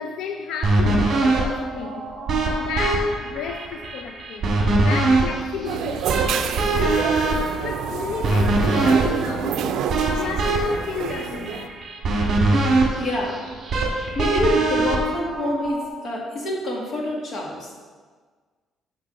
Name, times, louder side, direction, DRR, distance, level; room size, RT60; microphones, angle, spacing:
voice 1, 0.0-2.1 2.6-4.5 4.8-6.8 7.6-9.9 10.1-11.8, left 6 dB, 85° left, 5 dB, 0.5 m, -33 dB
sound 1, 0.6-15.9, right 2 dB, 40° right, 1.8 m, -23 dB
sound 2, 5.7-11.7, right 8 dB, 75° right, 0.5 m, -28 dB
voice 2, 13.0-13.4 14.1-17.8, left 1 dB, 45° left, -2 dB, 1.9 m, -26 dB
6.7 x 6.0 x 6.4 m, 1.5 s
cardioid pair, 150°, 0 cm